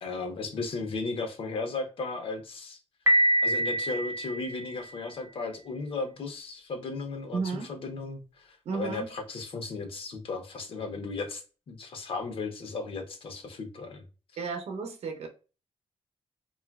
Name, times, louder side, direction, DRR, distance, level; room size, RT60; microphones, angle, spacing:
voice 1, 0.0-2.8 3.4-11.4 11.7-14.0, left 3 dB, 60° left, 0.7 m, -35 dB
Piano, 3.1-5.0, right 1 dB, 25° right, 0.6 m, -26 dB
voice 2, 7.3-7.7 8.7-9.1 14.4-15.3, right 4 dB, 90° right, 0.7 m, -33 dB
3.0 x 2.4 x 2.3 m
wide cardioid pair, 175°, 10 cm